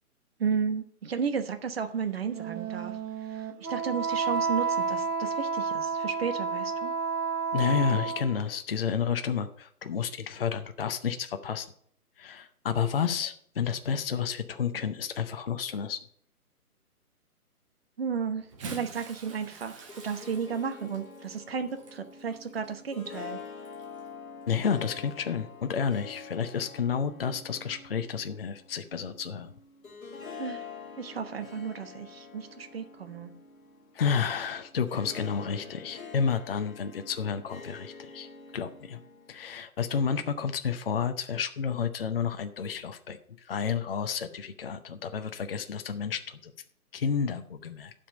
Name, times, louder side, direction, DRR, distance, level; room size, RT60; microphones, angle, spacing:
voice 1, 0.4-2.9 3.3-3.4 3.7-6.9 18.0-23.4 30.4-30.6 31.0-33.3, right 6 dB, 40° right, 9 dB, 1.1 m, -33 dB
Wind instrument woodwind instrument, 2.2-8.5, right 5 dB, 90° right, 1.7 m, -31 dB
voice 2, 7.5-11.7 12.2-16.0 24.5-29.5 33.9-38.3 38.5-39.0 39.3-43.2 43.5-46.5 46.9-47.9, left 6 dB, 40° left, 8 dB, 0.7 m, -30 dB
Bathtub (filling or washing) / Splash splatter, 18.4-24.1 25.0-25.1 26.6-26.7, right 4 dB, 20° right, 1.3 m, -47 dB
Harp, 19.7-39.5, left 5 dB, 60° left, 1.7 m, -46 dB
11.5 x 5.2 x 5.3 m, 0.63 s
figure-of-eight pair, 155°, 46 cm